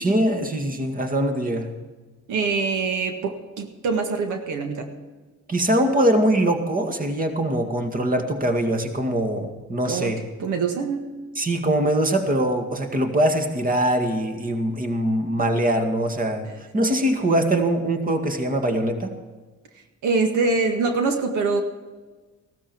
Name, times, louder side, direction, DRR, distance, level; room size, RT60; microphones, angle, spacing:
voice 1, 0.0-1.7 5.5-10.2 11.4-19.1, right 1 dB, 30° right, 5 dB, 2.1 m, -22 dB
voice 2, 2.3-4.9 9.8-10.1 10.4-11.1 16.5-16.6 20.0-21.6, right 4 dB, 80° right, 5 dB, 1.8 m, -24 dB
16.5 x 13.0 x 4.6 m, 1.3 s
cardioid pair, 90°, 30 cm